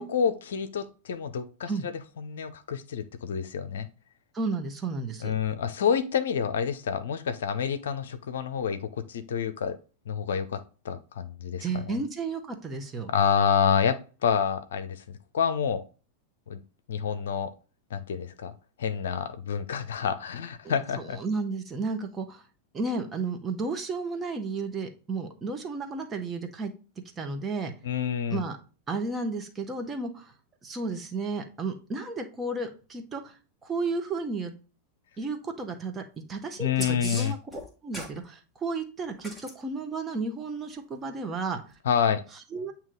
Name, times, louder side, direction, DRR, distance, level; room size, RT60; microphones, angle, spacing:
voice 1, 0.0-1.7 2.2-3.9 5.2-9.8 10.1-12.0 13.1-15.8 16.5-16.6 16.9-17.5 17.9-18.5 18.8-21.2 27.8-28.4 36.6-37.3 41.8-42.2, left 7 dB, 60° left, 11 dB, 0.6 m, -28 dB
voice 2, 4.3-5.3 11.6-13.1 20.6-22.4 22.7-26.7 27.2-27.7 28.3-28.6 28.9-30.3 30.6-34.5 35.2-36.0 36.3-37.4 37.8-41.6 42.5-42.7, right 3 dB, 20° right, 5 dB, 1.1 m, -33 dB
sound 1, 36.8-38.2 39.2-39.5 41.7-41.8, equal, ahead, 1.5 m, -37 dB
8.8 x 2.9 x 3.8 m, 0.35 s
figure-of-eight pair, 90°, 0 cm